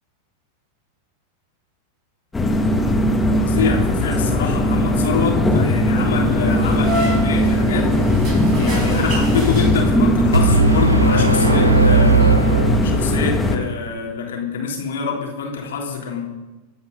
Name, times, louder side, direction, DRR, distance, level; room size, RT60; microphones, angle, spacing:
sound 1, 2.3-13.6, left 1 dB, 10° left, 1.8 m, -18 dB
voice 1, 3.4-7.9 8.6-12.5 12.8-16.2, left 6 dB, 60° left, 0 dB, 3.6 m, -25 dB
sound 2, 6.3-10.2, equal, 35° right, 6.8 m, -29 dB
sound 3, 10.3-13.4, right 3 dB, 85° right, 0.8 m, -17 dB
25.0 x 9.5 x 5.4 m, 1.1 s
figure-of-eight pair, 90°, 0 cm